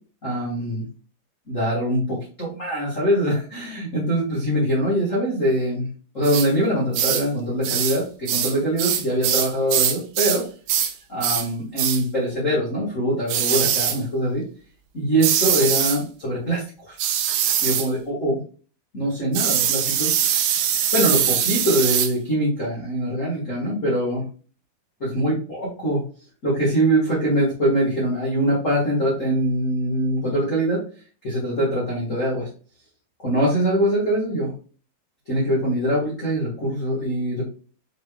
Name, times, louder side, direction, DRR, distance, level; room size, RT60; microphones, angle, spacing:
voice 1, 0.2-0.8 1.5-5.9 6.1-10.4 11.1-14.4 14.9-17.0 17.6-18.4 18.9-20.4 20.9-24.2 25.0-26.0 26.4-30.8 31.2-32.5 33.2-34.5 35.3-37.5, right 1 dB, 60° left, -8 dB, 0.7 m, -23 dB
sound 1, 6.2-6.5 6.9-7.3 7.6-8.0 8.3-10.4 10.7-10.9 11.2-11.5 11.8-12.0 13.3-14.0 15.2-16.0 17.0-17.9 19.3-22.1, right 9 dB, 80° right, 2.4 m, -22 dB
6.4 x 3.2 x 2.3 m, 0.39 s
omnidirectional pair, 4.2 m